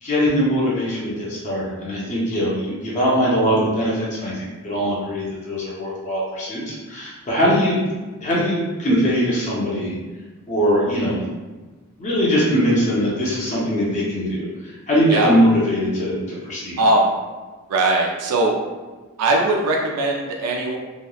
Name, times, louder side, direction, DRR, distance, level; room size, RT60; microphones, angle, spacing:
voice 1, 0.0-4.3 4.6-7.8 8.2-9.9 10.5-11.2 12.0-16.8, equal, 30° left, -7 dB, 0.6 m, -21 dB
voice 2, 16.8-17.1 17.7-18.6 19.2-20.8, right 2 dB, 90° right, 0 dB, 0.4 m, -19 dB
2.9 x 2.0 x 2.3 m, 1.3 s
head